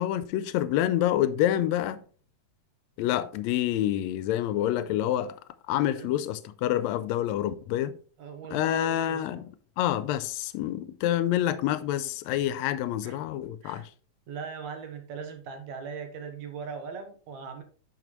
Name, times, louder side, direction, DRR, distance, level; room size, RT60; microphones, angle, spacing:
voice 1, 0.0-2.0 3.0-5.4 5.7-7.9 8.5-9.5 9.8-13.8, left 12 dB, 80° left, 1.8 m, -27 dB
voice 2, 8.2-9.4 13.0-13.2 13.6-13.9 14.3-17.6, right 5 dB, 75° right, 2.6 m, -39 dB
9.0 x 6.0 x 3.1 m
omnidirectional pair, 3.3 m